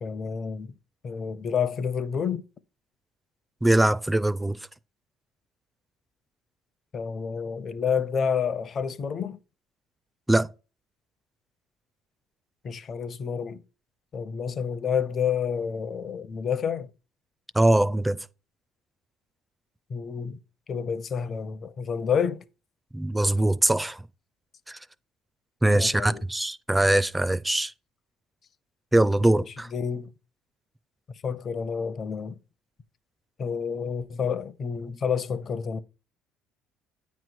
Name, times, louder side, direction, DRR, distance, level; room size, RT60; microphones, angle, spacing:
voice 1, 0.0-0.7 1.0-2.4 6.9-9.4 12.6-13.6 14.1-16.9 19.9-20.4 20.7-22.4 25.7-26.2 29.2-30.1 31.2-32.4 33.4-35.8, left 6 dB, 40° left, 0.6 m, -29 dB
voice 2, 3.6-4.6 10.3-10.5 17.6-18.2 22.9-24.0 24.7-24.8 25.6-27.7 28.9-29.7, right 1 dB, 10° right, 0.4 m, -22 dB
8.9 x 3.1 x 6.1 m
cardioid pair, 105°, 0 cm